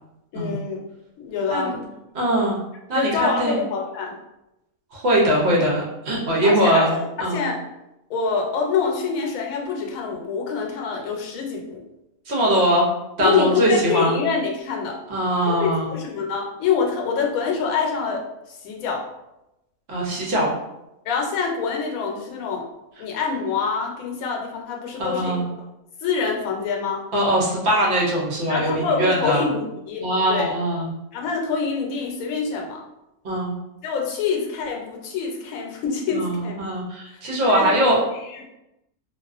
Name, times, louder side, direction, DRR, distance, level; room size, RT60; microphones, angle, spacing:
voice 1, 0.3-0.8 1.2-1.8 2.9-4.1 6.4-6.9 7.2-7.6 8.1-11.8 13.2-15.0 15.4-19.0 21.1-22.7 23.0-25.4 26.0-27.0 28.5-30.5 31.1-32.8 33.8-36.5 37.1-37.9, left 5 dB, 80° left, 0 dB, 1.0 m, -25 dB
voice 2, 2.1-2.6 2.9-3.6 4.9-6.9 7.2-7.4 12.3-12.9 13.2-14.2 15.1-15.9 19.9-20.5 25.0-25.4 27.1-29.5 30.0-30.9 33.2-33.5 36.1-38.0, right 1 dB, 60° right, -4 dB, 0.8 m, -21 dB
2.4 x 2.3 x 2.3 m, 0.92 s
omnidirectional pair, 1.5 m